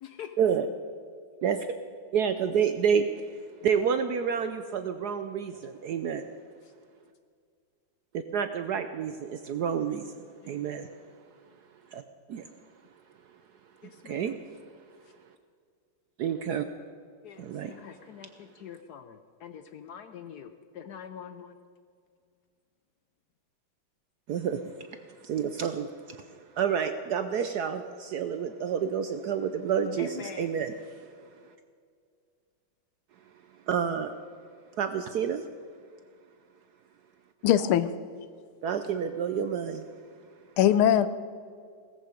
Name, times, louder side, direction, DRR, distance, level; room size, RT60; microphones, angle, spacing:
voice 1, 0.0-0.3 10.4-10.6 13.8-14.3 17.2-21.5 30.0-30.5, left 8 dB, 70° left, 1.0 m, -45 dB
voice 2, 2.1-3.1 3.6-6.3 8.1-10.9 11.9-12.0 12.3-12.5 13.8-14.4 16.2-16.7 17.4-17.8 24.3-31.1 33.7-34.1 34.8-35.4 38.6-39.8, right 7 dB, 70° right, 0.9 m, -29 dB
voice 3, 37.4-37.9 40.6-41.1, left 11 dB, 85° left, 1.6 m, -21 dB
17.5 x 14.0 x 5.1 m
omnidirectional pair, 2.3 m